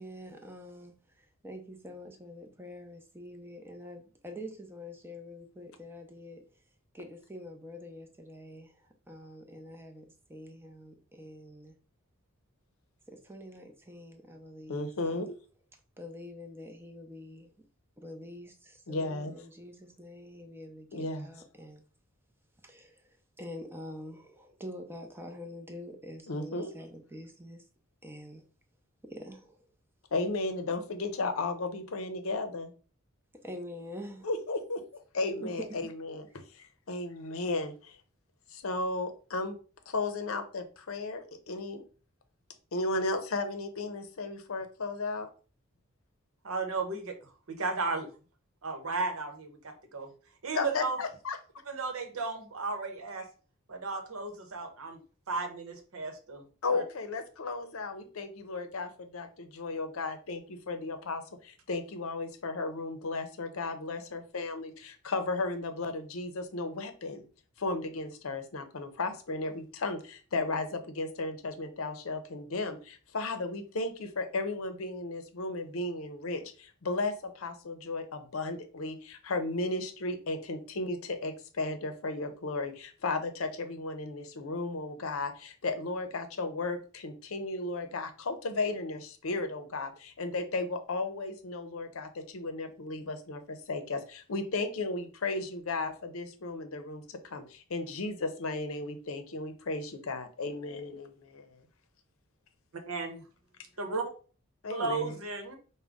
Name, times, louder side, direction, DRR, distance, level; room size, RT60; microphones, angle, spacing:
voice 1, 0.0-6.4 6.9-11.7 13.1-15.3 16.0-17.5 18.0-21.8 22.6-23.0 23.4-27.6 28.0-28.4 29.0-29.6 33.4-34.3 35.4-35.8, left 1 dB, 10° right, 0.6 m, -46 dB
voice 2, 14.7-15.4 18.9-19.3 20.9-21.3 26.3-26.7 30.1-32.7 34.2-38.0 38.5-39.6 39.9-41.8 42.7-45.3 50.5-51.4 56.6-67.2 67.6-101.6 104.6-105.1, left 3 dB, 70° left, 0.6 m, -35 dB
voice 3, 46.4-48.1 48.6-50.1 50.4-51.0 51.7-53.3 53.7-55.0 55.3-56.4 56.7-56.8 102.7-103.2 103.8-104.1 104.7-105.6, right 3 dB, 80° right, 0.9 m, -34 dB
5.0 x 2.2 x 3.5 m
head